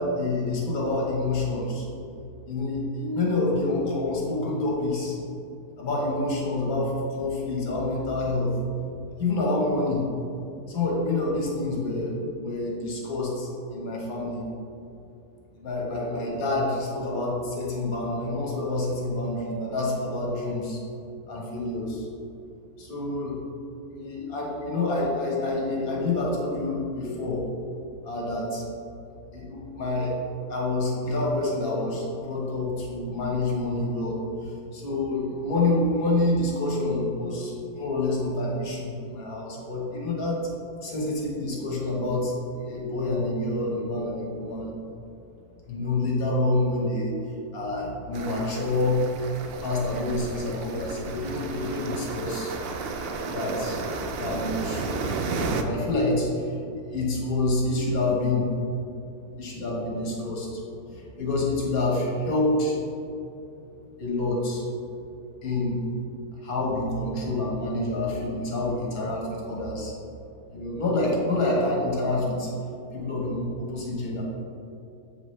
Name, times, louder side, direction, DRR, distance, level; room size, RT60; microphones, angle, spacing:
voice 1, 0.0-1.9 2.5-5.2 5.8-8.5 9.2-10.1 10.7-14.4 15.6-20.8 21.3-22.1 22.8-23.3 23.9-27.4 28.0-28.6 29.3-30.1 30.5-40.5 40.8-42.3 42.6-44.7 45.7-47.1 47.5-49.0 49.6-52.5 53.1-53.8 54.2-54.8 55.3-56.5 56.8-58.5 59.4-60.6 60.9-62.8 64.0-64.6 65.4-65.8 66.4-69.9 70.5-72.5 72.9-74.2, left 2 dB, 70° left, -3 dB, 1.7 m, -27 dB
sound 1, 48.1-55.6, right 4 dB, 85° right, 0.5 m, -33 dB
8.1 x 4.9 x 3.2 m, 2.7 s
omnidirectional pair, 1.6 m